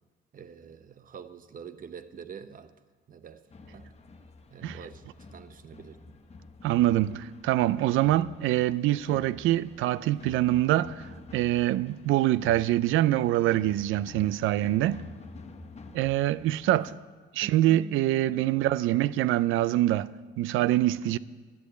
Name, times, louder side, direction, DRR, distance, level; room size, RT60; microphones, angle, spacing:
voice 1, 0.3-2.7 3.1-3.9 4.5-6.2 17.4-18.1 18.3-18.7, right 6 dB, 45° right, 0.8 m, -46 dB
sound 1, 3.5-16.9, left 3 dB, 35° left, 1.0 m, -48 dB
voice 2, 6.6-11.1 11.3-15.0 15.9-17.0 17.3-20.1 20.4-21.2, right 14 dB, 85° right, 0.4 m, -25 dB
10.5 x 8.2 x 8.0 m
cardioid pair, 90°, 20 cm